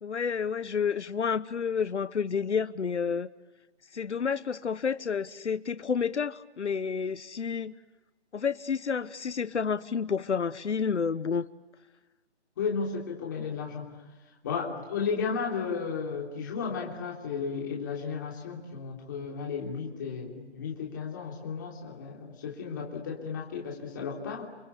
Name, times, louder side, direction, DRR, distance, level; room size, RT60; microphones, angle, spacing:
voice 1, 0.0-3.3 3.9-7.7 8.3-11.5, left 6 dB, 80° left, 14 dB, 1.2 m, -30 dB
voice 2, 12.6-14.0 14.4-24.4, left 5 dB, 15° left, -1 dB, 3.3 m, -34 dB
29.0 x 24.5 x 8.4 m, 1.2 s
hypercardioid pair, 180°, 35 cm